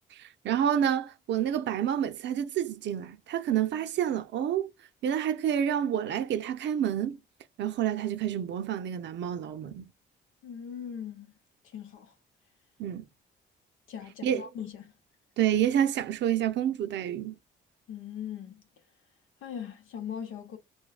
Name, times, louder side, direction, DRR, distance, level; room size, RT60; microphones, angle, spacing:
voice 1, 0.1-4.7 5.0-7.2 7.6-9.9 12.8-13.1 14.2-14.5 15.4-17.3, right 9 dB, 65° right, 0.5 m, -28 dB
voice 2, 10.4-11.3 11.6-12.1 13.9-14.9 17.9-18.6 19.4-20.6, left 8 dB, 85° left, 0.8 m, -40 dB
3.3 x 2.2 x 2.3 m
cardioid pair, 90°, 20 cm